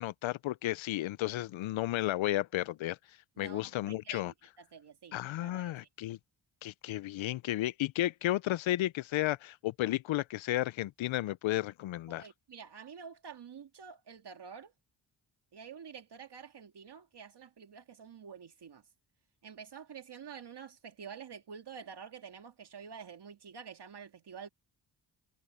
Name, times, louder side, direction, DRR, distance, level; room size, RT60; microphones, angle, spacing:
voice 1, 0.0-4.3 5.1-6.2 6.6-12.3, left 15 dB, 80° left, 0.6 m, -33 dB
voice 2, 3.9-4.3 4.7-5.1 5.4-5.7 12.1-14.7 15.5-18.8 19.4-24.5, right 6 dB, 60° right, 2.0 m, -48 dB
cardioid pair, 55°, 46 cm